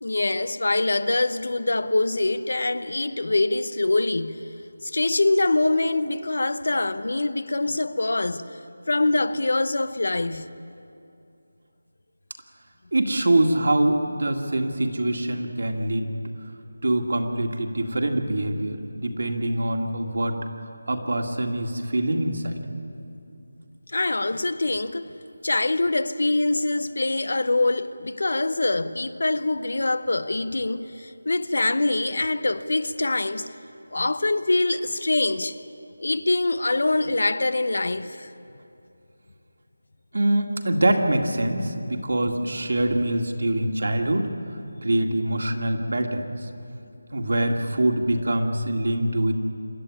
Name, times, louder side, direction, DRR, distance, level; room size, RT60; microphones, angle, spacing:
voice 1, 0.0-4.4 4.8-8.4 8.9-10.5 23.9-25.1 25.4-33.5 33.9-35.5 36.0-38.3, left 2 dB, 60° left, 0.8 m, -24 dB
voice 2, 12.9-16.1 16.8-20.4 20.9-22.5 40.1-44.3 44.8-46.3 47.1-49.3, right 1 dB, 55° right, 2.1 m, -24 dB
26.5 x 13.5 x 9.7 m
figure-of-eight pair, 180°, 0 cm